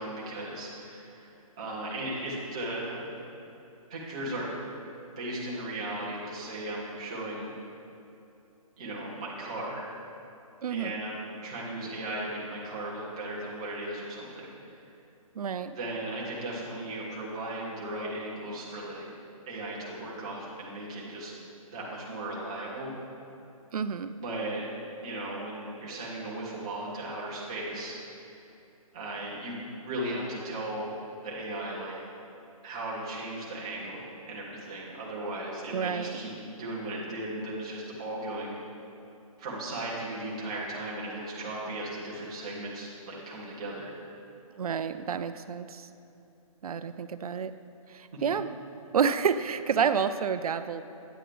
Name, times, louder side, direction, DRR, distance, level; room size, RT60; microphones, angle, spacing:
voice 1, 0.0-3.1 3.9-4.5 5.2-7.5 8.8-9.9 10.7-14.5 15.8-19.1 19.5-21.3 21.7-22.9 24.2-24.8 25.0-28.3 28.9-30.9 31.2-32.0 32.6-38.6 39.4-43.9, right 1 dB, 10° right, -6 dB, 0.6 m, -36 dB
voice 2, 10.6-11.0 15.4-15.8 23.7-24.1 35.7-36.2 44.6-45.9 46.6-47.5 47.9-48.5 48.9-50.8, right 7 dB, 80° right, 11 dB, 0.4 m, -29 dB
8.8 x 7.8 x 3.3 m, 2.8 s
hypercardioid pair, 180°, 19 cm